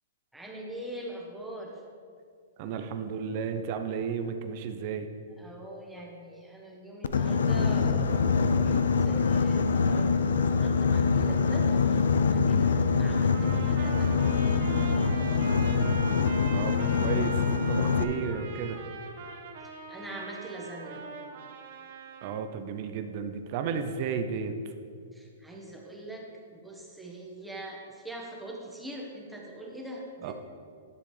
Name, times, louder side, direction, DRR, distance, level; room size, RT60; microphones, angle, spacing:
voice 1, 0.3-1.8 5.4-14.5 15.1-17.2 19.9-21.0 25.1-30.3, right 1 dB, 5° right, -2 dB, 1.2 m, -43 dB
voice 2, 2.6-5.1 16.5-17.4 17.7-18.8 22.2-24.6 30.2-30.3, right 6 dB, 45° right, 7 dB, 0.6 m, -33 dB
Boat Water vehicle, 7.0-18.0, left 5 dB, 85° left, 0.4 m, -24 dB
Trumpet, 13.3-22.4, right 5 dB, 65° right, 1.0 m, -42 dB
11.0 x 6.8 x 3.3 m, 2.3 s
hypercardioid pair, 140°, 0 cm